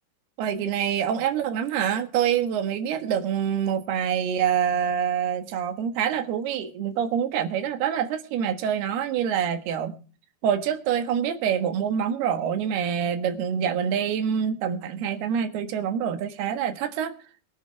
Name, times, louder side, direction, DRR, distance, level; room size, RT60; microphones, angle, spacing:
voice 1, 0.4-10.0 10.4-17.1, right 8 dB, 75° right, 3.4 m, -26 dB
23.0 x 10.0 x 3.3 m
omnidirectional pair, 4.7 m